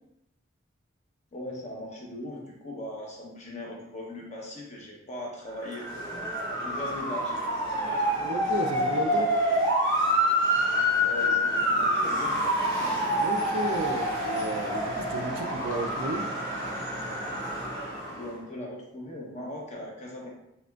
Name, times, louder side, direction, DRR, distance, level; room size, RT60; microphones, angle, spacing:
voice 1, 1.3-6.2 6.6-7.4 11.0-12.5 18.0-20.3, left 1 dB, 35° left, -2 dB, 1.0 m, -39 dB
Motor vehicle (road) / Siren, 5.6-18.3, equal, 20° left, 1.2 m, -27 dB
voice 2, 8.2-9.3 13.1-16.3, right 2 dB, 75° right, 5 dB, 0.5 m, -33 dB
4.9 x 3.5 x 2.4 m, 0.84 s
head